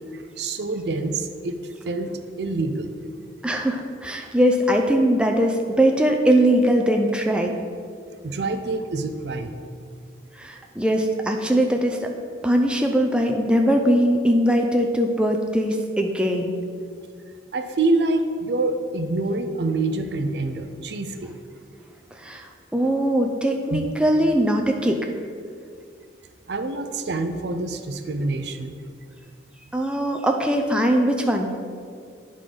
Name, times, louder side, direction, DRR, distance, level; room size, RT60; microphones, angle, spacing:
voice 1, 0.1-1.6 1.8-2.1 2.4-3.0 8.2-9.5 17.5-21.3 23.7-23.9 26.5-28.8, right 2 dB, 65° right, 7 dB, 0.5 m, -26 dB
voice 2, 3.4-7.6 10.4-12.1 12.4-16.6 22.2-25.0 29.7-31.5, equal, 5° right, 2 dB, 0.4 m, -21 dB
9.6 x 3.7 x 5.0 m, 2.2 s
head